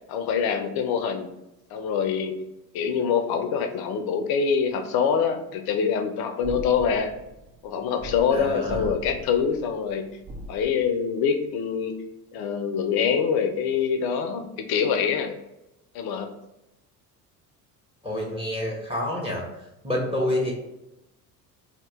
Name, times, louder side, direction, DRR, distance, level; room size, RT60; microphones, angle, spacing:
voice 1, 0.1-1.3 1.7-2.3 2.7-7.1 7.6-10.1 10.5-11.9 12.3-15.3 15.9-16.3, left 6 dB, 50° left, 6 dB, 0.6 m, -25 dB
sound 1, 6.4-10.7, equal, 35° right, 0.8 m, -40 dB
voice 2, 8.3-8.9 18.0-19.4 19.8-20.5, left 1 dB, 10° right, -2 dB, 1.0 m, -28 dB
2.8 x 2.4 x 3.5 m, 0.90 s
hypercardioid pair, 60°, 49 cm